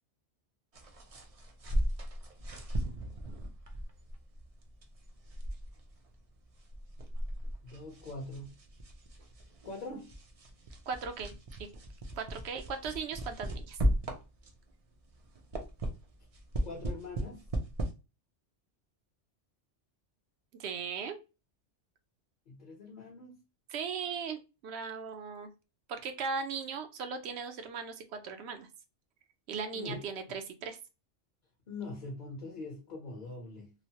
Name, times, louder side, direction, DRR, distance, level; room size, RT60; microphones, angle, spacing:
sound 1, 0.7-14.7 15.1-17.9, equal, 50° right, 0.4 m, -37 dB
voice 1, 7.6-8.6 9.6-10.1 16.6-17.5 22.5-23.4 29.7-30.1 31.7-33.7, left 2 dB, 45° left, 0.9 m, -43 dB
voice 2, 10.9-11.3 12.1-13.8 20.6-21.2 23.7-25.5 25.9-28.7 29.5-30.8, right 5 dB, 70° right, 0.8 m, -38 dB
3.0 x 2.1 x 2.7 m
omnidirectional pair, 1.2 m